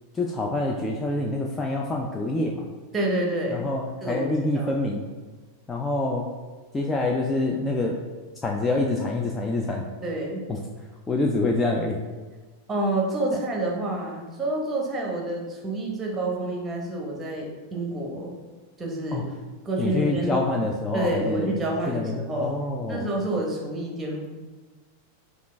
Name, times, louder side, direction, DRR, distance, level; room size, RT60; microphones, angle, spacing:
voice 1, 0.1-2.6 3.5-5.0 5.7-6.3 6.7-8.0 8.4-9.8 10.5-10.6 11.1-12.0 13.3-13.4 19.1-19.2 19.8-21.6 21.9-23.1, left 2 dB, 15° left, 0 dB, 0.4 m, -26 dB
voice 2, 2.9-3.7 4.0-4.3 4.5-4.7 10.0-10.4 12.7-18.3 18.8-19.3 19.6-20.4 20.9-22.5 22.9-24.3, right 1 dB, 15° right, -1 dB, 0.9 m, -28 dB
5.0 x 2.4 x 3.2 m, 1.3 s
figure-of-eight pair, 90°, 0 cm